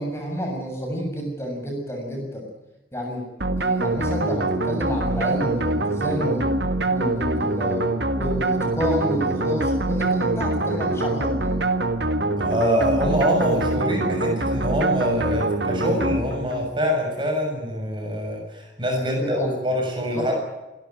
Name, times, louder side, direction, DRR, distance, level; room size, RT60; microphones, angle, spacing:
voice 1, 0.0-2.5 2.9-3.2 3.6-6.6 6.9-7.9 8.2-11.6 19.0-19.5 20.1-20.3, equal, 15° left, 1 dB, 7.5 m, -29 dB
sound 1, 3.4-16.7, right 2 dB, 65° right, 1.8 m, -24 dB
voice 2, 12.4-20.3, equal, 25° right, 1 dB, 7.2 m, -25 dB
27.0 x 13.0 x 9.4 m, 1.0 s
head